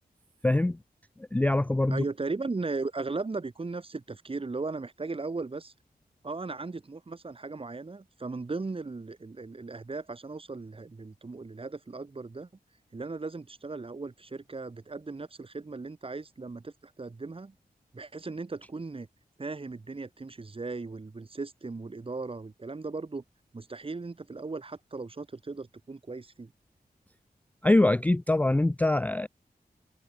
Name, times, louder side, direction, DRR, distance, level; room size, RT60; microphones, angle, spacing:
voice 1, 0.4-0.8 1.2-2.0 27.6-29.3, left 2 dB, 10° left, 0.3 m, -24 dB
voice 2, 1.9-5.7 6.2-12.5 12.9-17.5 17.9-19.1 19.4-23.2 23.5-26.5, right 3 dB, 35° right, 1.9 m, -37 dB
open air
wide cardioid pair, 125°, 16 cm